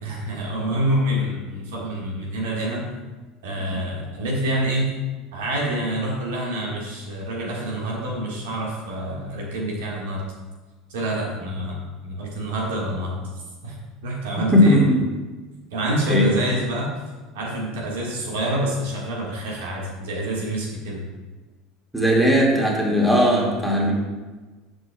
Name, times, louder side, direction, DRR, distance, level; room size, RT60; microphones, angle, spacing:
voice 1, 0.0-2.9 3.4-4.9 5.3-10.2 10.9-11.8 12.0-13.2 13.6-13.8 14.0-14.8 15.7-16.9 17.3-21.0, right 1 dB, 75° right, -2 dB, 1.6 m, -27 dB
voice 2, 14.5-15.0 16.1-16.3 21.9-23.9, equal, 10° right, -2 dB, 1.9 m, -17 dB
11.0 x 5.5 x 2.3 m, 1.2 s
hypercardioid pair, 80°, 0 cm